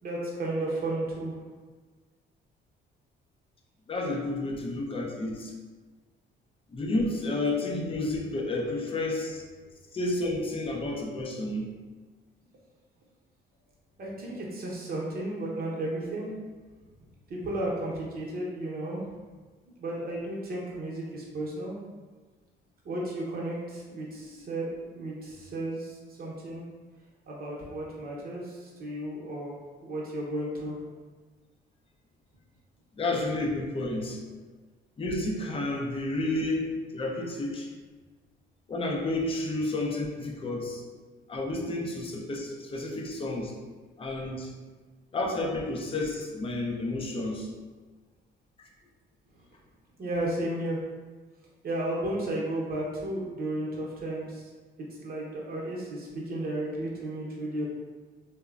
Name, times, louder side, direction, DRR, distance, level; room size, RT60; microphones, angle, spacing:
voice 1, 0.0-1.4 14.0-16.3 17.3-19.0 19.8-21.8 22.8-26.6 27.3-29.5 29.8-30.9 50.0-50.8 51.6-54.5 55.0-57.7, right 1 dB, 50° right, -4 dB, 0.8 m, -33 dB
voice 2, 3.9-5.5 6.7-9.4 9.9-11.7 24.3-24.4 32.9-34.2 35.0-37.7 38.7-40.8 41.3-43.5 44.0-44.5 45.1-47.5 48.6-48.7, left 2 dB, 30° left, 0 dB, 0.5 m, -31 dB
2.9 x 2.1 x 2.4 m, 1.4 s
cardioid pair, 90°, 20 cm